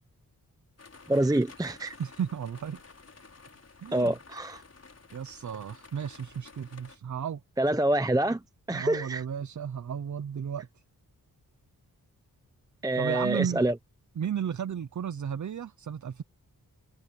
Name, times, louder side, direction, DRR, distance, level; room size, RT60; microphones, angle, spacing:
sound 1, 0.8-7.0, left 4 dB, 45° left, 5.5 m, -52 dB
voice 1, 1.1-2.0 3.9-4.6 7.6-8.4 8.7-9.2 12.8-13.7, right 1 dB, 10° right, 0.7 m, -26 dB
voice 2, 2.0-2.8 3.8-4.1 5.1-7.4 8.7-10.7 13.0-13.6 14.2-16.2, right 8 dB, 55° right, 0.7 m, -34 dB
wide cardioid pair, 120°, 36 cm